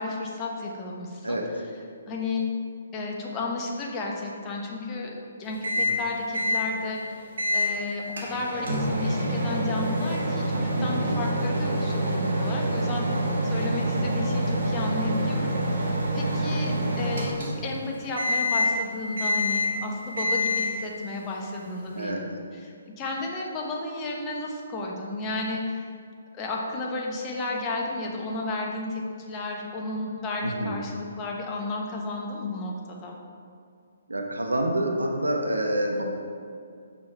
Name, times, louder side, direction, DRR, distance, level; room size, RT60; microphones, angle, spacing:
voice 1, 0.0-1.6 2.1-2.4 2.9-22.2 22.5-25.9 26.3-33.2, left 2 dB, 20° left, -1 dB, 1.1 m, -33 dB
Microwave oven, 5.6-6.0 6.3-6.7 7.4-7.7 8.2-17.8 18.2-18.8 19.2-19.8 20.2-20.8, equal, 60° right, 1.6 m, -26 dB
voice 2, 10.8-11.2 21.9-22.2 30.4-30.8 34.1-36.0, right 1 dB, 80° right, 1 dB, 1.1 m, -27 dB
6.7 x 5.7 x 4.5 m, 2.3 s
figure-of-eight pair, 135°, 0 cm